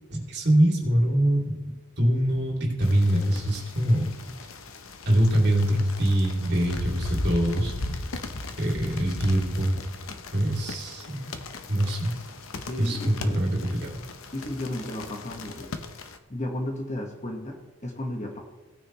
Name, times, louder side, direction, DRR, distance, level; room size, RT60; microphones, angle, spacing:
voice 1, 0.1-1.6 2.0-4.1 5.0-7.7 8.6-9.7 10.3-11.2 11.7-12.2 12.8-14.0, right 1 dB, 50° right, -2 dB, 3.2 m, -23 dB
sound 1, 2.8-16.2, left 2 dB, 85° left, 0.9 m, -37 dB
voice 2, 12.7-13.4 14.3-15.8 16.3-18.4, left 1 dB, 35° left, 1 dB, 1.6 m, -34 dB
17.5 x 9.3 x 3.3 m, 1.1 s
head